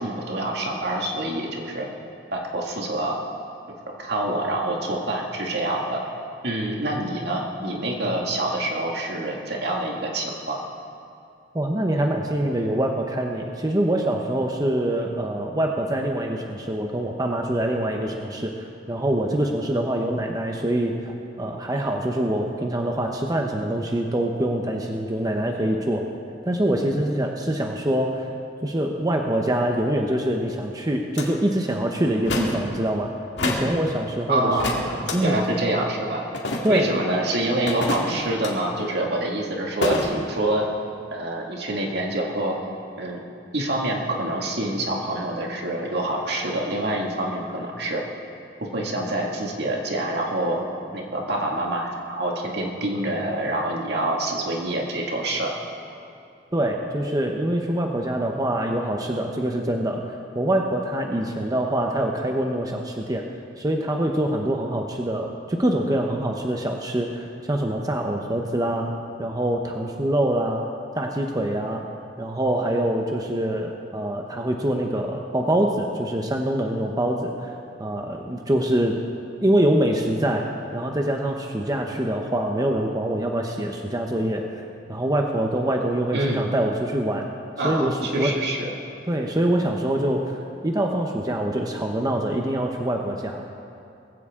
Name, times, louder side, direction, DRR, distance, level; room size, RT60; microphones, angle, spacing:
voice 1, 0.0-1.9 2.3-3.2 4.0-6.0 6.4-10.6 34.3-34.9 35.2-36.3 36.7-40.6 41.1-42.5 43.0-43.2 43.5-48.0 48.6-50.7 50.9-55.6 86.1-86.5 87.6-88.7, right 1 dB, 65° right, -1 dB, 2.2 m, -26 dB
voice 2, 11.5-26.1 26.5-28.3 28.6-33.1 33.4-34.6 35.1-35.4 36.6-36.9 56.5-63.2 63.6-68.9 69.2-70.7 70.9-71.8 72.2-77.3 77.8-78.9 79.4-84.5 84.9-87.3 87.6-88.3 89.1-90.3 90.6-93.4, right 1 dB, 20° right, 2 dB, 0.9 m, -24 dB
sound 1, 31.2-31.3 32.3-32.6 33.4-33.7 34.6-35.2 36.3-36.9 37.7-38.5 39.8-40.1, left 2 dB, 80° left, 2.1 m, -27 dB
20.0 x 15.5 x 3.7 m, 2.6 s
head